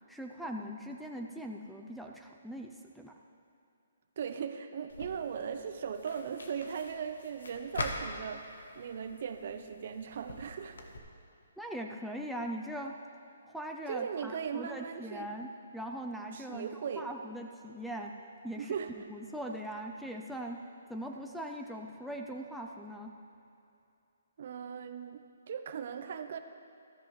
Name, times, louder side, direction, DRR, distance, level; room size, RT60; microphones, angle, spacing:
voice 1, 0.1-3.1 11.6-12.9 13.4-18.1 18.4-18.8 19.1-20.6 20.9-23.1, right 1 dB, ahead, 1 dB, 0.4 m, -41 dB
voice 2, 4.2-10.9 13.9-15.3 16.3-17.1 18.6-18.9 24.4-26.4, right 7 dB, 50° right, 8 dB, 0.7 m, -38 dB
sound 1, 4.9-11.0, left 2 dB, 90° left, 1.3 m, -44 dB
13.5 x 13.5 x 3.2 m, 2.6 s
hypercardioid pair, 165°, 0 cm